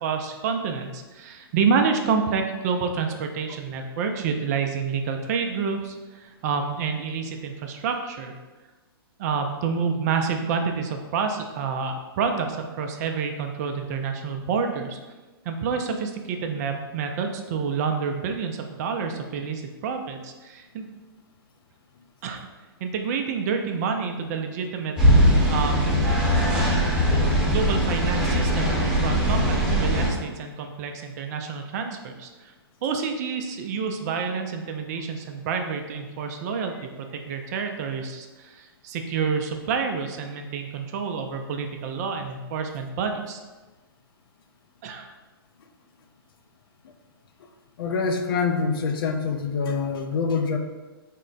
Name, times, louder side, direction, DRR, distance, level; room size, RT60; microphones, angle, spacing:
voice 1, 0.0-8.3 9.2-15.0 15.4-20.9 22.2-22.4 22.8-24.9 25.5-25.8 26.5-26.7 27.4-32.3 32.8-43.4 44.8-45.1, right 5 dB, 40° right, 5 dB, 0.4 m, -28 dB
sound 1, 25.0-30.1, equal, 5° right, 1.0 m, -20 dB
voice 2, 47.8-50.6, left 5 dB, 65° left, 6 dB, 0.5 m, -25 dB
3.5 x 2.1 x 3.9 m, 1.2 s
hypercardioid pair, 135°, 13 cm